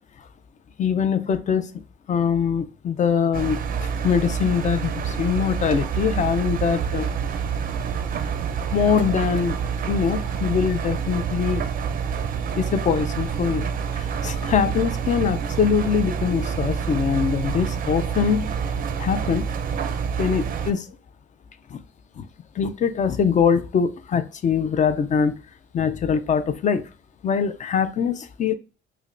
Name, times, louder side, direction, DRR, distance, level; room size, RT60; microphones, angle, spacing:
voice 1, 0.8-1.7 2.1-7.1 8.7-9.6 9.8-11.6 12.6-13.7 13.9-18.6 19.0-19.5 20.2-20.9 21.7-21.8 22.2-22.3 22.6-25.3 25.7-26.9 27.2-28.5, left 7 dB, 35° left, 0.4 m, -23 dB
Engine, 3.3-20.7, right 7 dB, 45° right, 0.4 m, -27 dB
5.0 x 2.1 x 2.5 m
cardioid pair, 120°, 21 cm